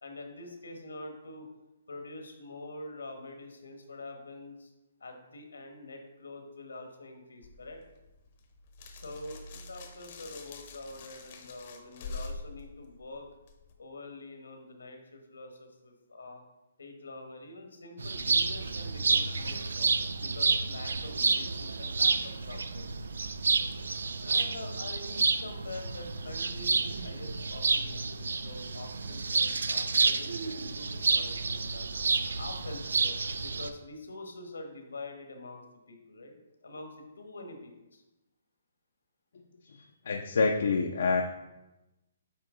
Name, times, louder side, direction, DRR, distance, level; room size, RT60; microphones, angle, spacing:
voice 1, 0.0-1.5 1.9-4.7 5.0-7.8 8.9-13.2 13.8-16.4 16.8-23.0 24.2-31.9 32.4-36.4 36.6-38.0 39.6-39.9, left 2 dB, 90° left, 4 dB, 1.2 m, -45 dB
sound 1, 7.4-13.7, left 3 dB, 45° left, 0.8 m, -45 dB
sound 2, 18.0-33.7, right 4 dB, 85° right, 0.4 m, -30 dB
voice 2, 40.1-41.2, left 4 dB, 70° left, 2 dB, 0.6 m, -26 dB
8.6 x 3.0 x 3.7 m, 0.99 s
hypercardioid pair, 150°, 0 cm